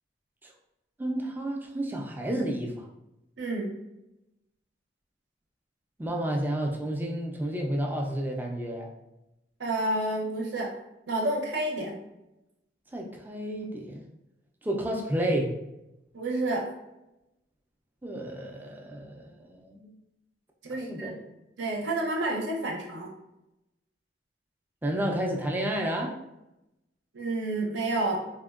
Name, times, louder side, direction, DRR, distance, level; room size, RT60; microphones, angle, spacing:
voice 1, 1.0-2.9 6.0-8.9 12.9-14.0 14.6-15.5 18.0-19.9 20.8-21.1 24.8-26.2, right 1 dB, 10° right, 0 dB, 0.3 m, -31 dB
voice 2, 3.4-3.7 9.6-10.7 11.1-11.9 16.1-16.7 20.6-21.1 21.6-23.1 27.1-28.2, right 2 dB, 75° right, -1 dB, 0.7 m, -29 dB
3.5 x 2.1 x 2.3 m, 0.92 s
head